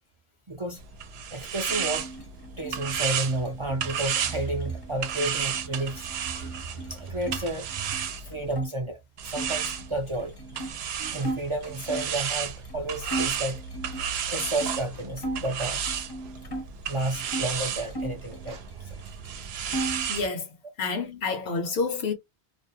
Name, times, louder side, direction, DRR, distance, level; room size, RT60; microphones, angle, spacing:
voice 1, 0.5-0.8 1.3-2.1 2.6-10.3 11.0-13.6 14.3-15.9 16.9-19.0, right 2 dB, 40° right, 0.4 m, -32 dB
sound 1, 0.8-8.6 9.2-20.3, right 8 dB, 75° right, 0.8 m, -33 dB
sound 2, 1.7-7.4 7.7-8.7 9.3-12.2 12.6-12.8 13.0-15.5 15.9-17.5 17.9-19.0 19.2-20.1, right 1 dB, 30° left, 0.6 m, -38 dB
voice 2, 20.1-22.1, left 4 dB, 75° left, 1.0 m, -29 dB
2.5 x 2.1 x 2.7 m
omnidirectional pair, 1.1 m